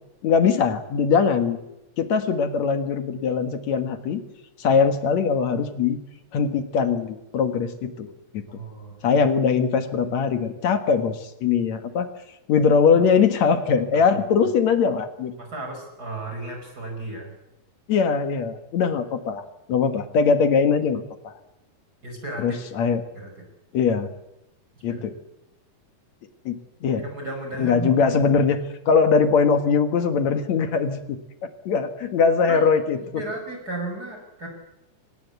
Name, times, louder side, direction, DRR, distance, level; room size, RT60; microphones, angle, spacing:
voice 1, 0.2-1.6 2.0-4.2 4.6-6.0 6.3-8.4 9.0-12.1 12.5-15.3 17.9-21.3 22.4-23.0 23.7-24.1 24.8-25.1 26.5-27.0 27.6-33.2, left 5 dB, 60° left, 8 dB, 2.6 m, -21 dB
voice 2, 8.5-9.0 14.1-14.2 15.4-17.3 22.0-22.6 23.1-23.3 24.9-25.0 27.0-27.9 32.5-32.6 33.0-34.5, right 2 dB, 25° right, 2 dB, 5.6 m, -34 dB
24.5 x 19.5 x 8.2 m, 0.89 s
omnidirectional pair, 4.0 m